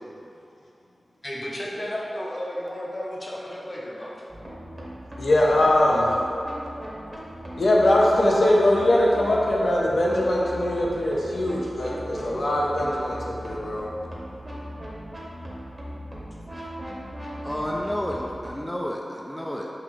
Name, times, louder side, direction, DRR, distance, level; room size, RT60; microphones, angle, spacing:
voice 1, 1.2-4.2, equal, 35° left, -4 dB, 0.7 m, -33 dB
sound 1, 4.3-18.5, equal, 30° right, 0.9 m, -39 dB
voice 2, 5.2-6.1 7.6-13.9, left 1 dB, 75° left, -4 dB, 0.6 m, -21 dB
voice 3, 17.4-19.7, equal, 5° left, -2 dB, 0.3 m, -30 dB
5.7 x 2.4 x 3.1 m, 2.7 s
wide cardioid pair, 60°, 0 cm